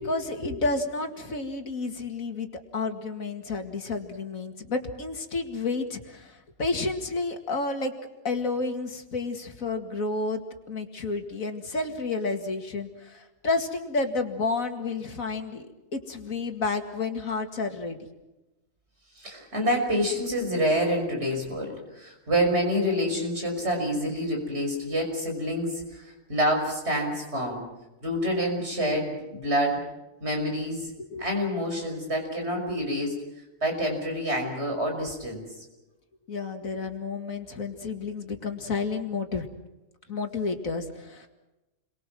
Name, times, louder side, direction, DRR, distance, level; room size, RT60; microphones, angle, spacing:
voice 1, 0.0-2.5 2.7-7.9 8.2-10.4 10.7-15.7 15.9-18.0 31.0-31.3 36.3-39.5 40.1-41.3, left 3 dB, 85° left, 5 dB, 2.6 m, -30 dB
voice 2, 19.2-27.6 28.0-29.8 30.2-30.9 31.2-33.2 33.6-35.4, equal, 55° right, 2 dB, 6.5 m, -27 dB
29.5 x 23.0 x 6.2 m, 1.0 s
omnidirectional pair, 1.4 m